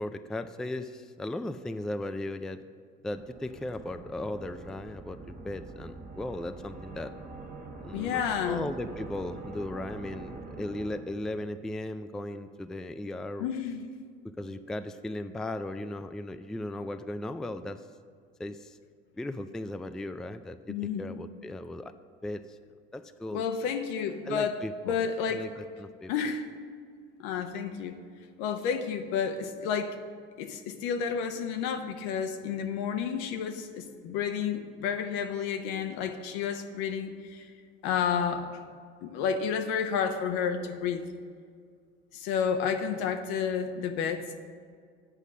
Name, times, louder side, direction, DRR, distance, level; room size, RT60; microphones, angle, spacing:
voice 1, 0.0-2.6 3.0-7.1 7.8-13.5 14.2-17.8 18.4-18.8 19.2-21.9 22.2-22.6 22.9-23.4 24.3-25.0 25.3-26.1, left 1 dB, ahead, 10 dB, 0.3 m, -37 dB
sound 1, 3.1-11.6, right 3 dB, 30° right, 1.3 m, -45 dB
voice 2, 7.9-8.6 13.4-13.8 20.7-21.1 23.3-25.5 26.1-26.5 27.2-28.0 28.4-30.0 30.4-37.5 37.8-38.6 39.0-41.0 42.1-44.4, left 7 dB, 75° left, 7 dB, 0.9 m, -31 dB
8.2 x 5.4 x 7.3 m, 2.1 s
hypercardioid pair, 70°, 30 cm